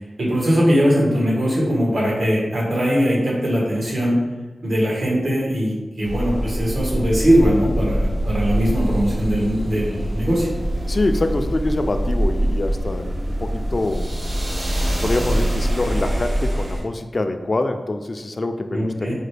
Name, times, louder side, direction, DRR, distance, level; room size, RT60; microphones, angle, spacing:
voice 1, 0.2-4.2 4.6-10.5 18.7-19.1, equal, 85° right, -4 dB, 1.4 m, -20 dB
sound 1, 6.0-16.8, right 1 dB, 65° right, 1.1 m, -24 dB
voice 2, 10.8-14.1 14.8-19.1, left 2 dB, 50° left, 7 dB, 0.3 m, -25 dB
5.0 x 2.2 x 3.2 m, 1.2 s
wide cardioid pair, 70°, 0 cm